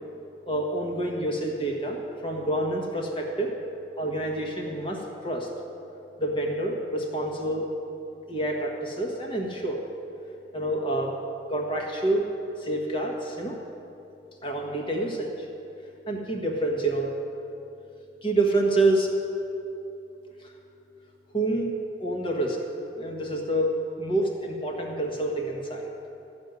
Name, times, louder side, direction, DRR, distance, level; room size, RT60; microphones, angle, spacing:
voice 1, 0.4-3.5 4.0-5.5 6.2-7.7 8.3-9.8 10.5-11.1 11.5-12.3 12.6-13.6 14.4-15.5 16.1-17.1 18.2-19.1 20.4-20.5 21.3-21.7 22.0-22.6 23.0-25.9, right 1 dB, 30° left, 0 dB, 1.5 m, -27 dB
14.0 x 5.4 x 9.5 m, 2.9 s
head